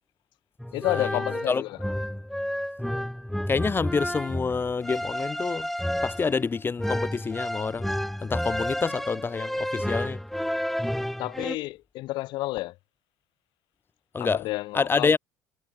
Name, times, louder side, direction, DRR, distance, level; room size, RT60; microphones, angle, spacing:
sound 1, 0.6-11.6, equal, ahead, 1.2 m, -31 dB
voice 1, 0.7-1.8 8.6-8.7 11.2-12.8 14.2-15.2, left 19 dB, 65° left, 0.5 m, -31 dB
voice 2, 3.5-5.7 6.0-7.9 8.2-10.2 14.1-14.4 14.7-15.2, left 5 dB, 25° left, 0.8 m, -27 dB
hypercardioid pair, 60°, 8 cm